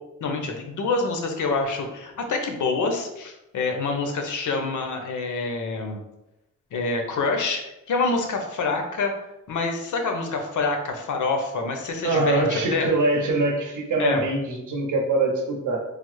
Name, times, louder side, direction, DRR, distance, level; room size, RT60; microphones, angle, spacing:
voice 1, 0.2-6.0 6.7-7.6 7.9-9.1 9.5-12.9 14.0-14.2, left 3 dB, 80° left, 4 dB, 0.6 m, -26 dB
voice 2, 12.0-15.8, right 2 dB, 85° right, 1 dB, 0.7 m, -23 dB
3.2 x 2.0 x 3.0 m, 0.92 s
wide cardioid pair, 125°, 30 cm